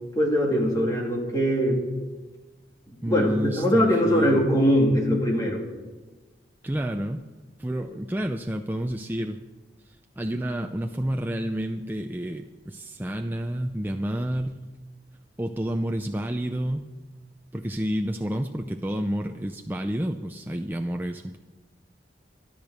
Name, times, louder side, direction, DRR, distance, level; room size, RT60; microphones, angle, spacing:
voice 1, 0.1-1.8 3.0-5.6, equal, 20° left, -2 dB, 2.6 m, -22 dB
voice 2, 3.0-4.4 6.6-7.2 7.6-9.4 9.9-14.6 15.4-16.9 17.5-21.4, equal, 10° right, 4 dB, 0.5 m, -29 dB
13.5 x 12.0 x 6.5 m, 1.2 s
head